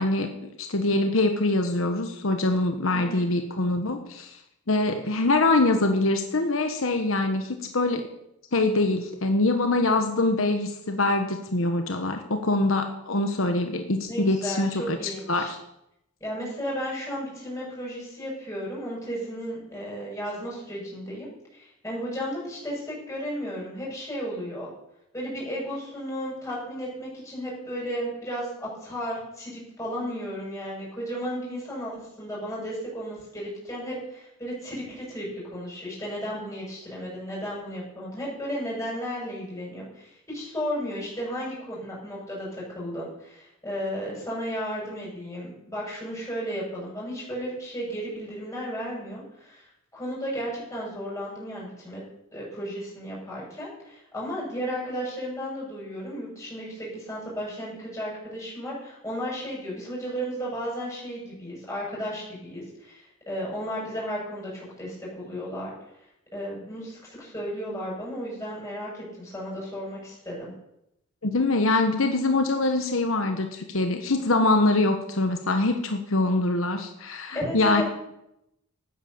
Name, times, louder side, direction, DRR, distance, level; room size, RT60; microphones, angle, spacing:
voice 1, 0.0-4.4 4.7-8.0 8.5-15.0 15.3-15.6 71.2-77.8, left 2 dB, 70° left, 6 dB, 1.2 m, -24 dB
voice 2, 14.1-15.5 16.2-24.7 25.1-49.7 49.9-52.0 52.3-65.7 66.3-70.5 77.3-77.8, equal, 15° left, -5 dB, 7.1 m, -34 dB
13.0 x 9.5 x 7.1 m, 0.83 s
head